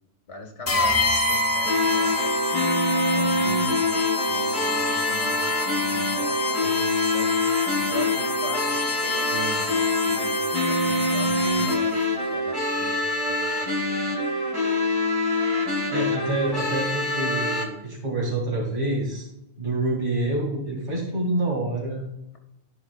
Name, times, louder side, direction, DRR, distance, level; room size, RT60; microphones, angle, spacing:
voice 1, 0.3-3.9 4.3-10.3 10.7-14.2, left 2 dB, 70° left, 2 dB, 1.9 m, -40 dB
sound 1, 0.7-12.0, left 3 dB, 35° left, 0.9 m, -27 dB
sound 2, 1.6-17.6, left 2 dB, 20° right, 1.5 m, -25 dB
voice 2, 15.7-19.3 19.6-22.0, right 2 dB, 45° right, -4 dB, 2.4 m, -27 dB
13.5 x 4.7 x 2.4 m, 0.86 s
omnidirectional pair, 1.2 m